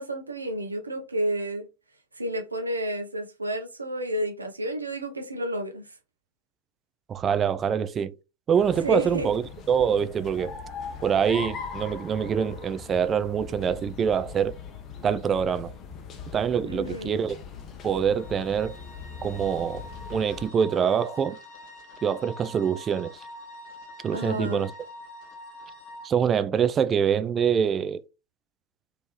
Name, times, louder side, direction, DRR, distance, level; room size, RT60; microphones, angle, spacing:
voice 1, 0.0-1.7 2.1-6.0 8.8-9.3 16.6-17.2 24.1-24.7, right 1 dB, 80° right, 0.7 m, -31 dB
voice 2, 7.1-8.2 8.5-9.4 9.7-10.5 11.0-14.5 15.0-15.7 16.3-17.4 17.8-18.7 19.2-19.8 20.1-21.4 22.0-23.2 24.0-24.7 26.0-28.0, right 7 dB, 25° right, 0.3 m, -25 dB
sound 1, 8.6-20.5, left 6 dB, 30° left, 0.7 m, -41 dB
sound 2, 17.9-26.1, left 1 dB, 45° left, 1.2 m, -45 dB
3.2 x 2.9 x 3.1 m
figure-of-eight pair, 90°, 0 cm